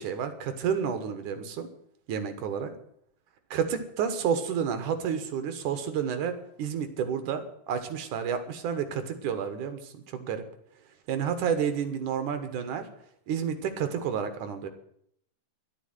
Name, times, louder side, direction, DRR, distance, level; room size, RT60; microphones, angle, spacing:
voice 1, 0.0-1.7 2.1-2.7 3.5-10.4 11.1-12.9 13.3-14.7, right 7 dB, 70° right, 8 dB, 2.6 m, -30 dB
12.0 x 8.1 x 9.7 m, 0.70 s
omnidirectional pair, 4.0 m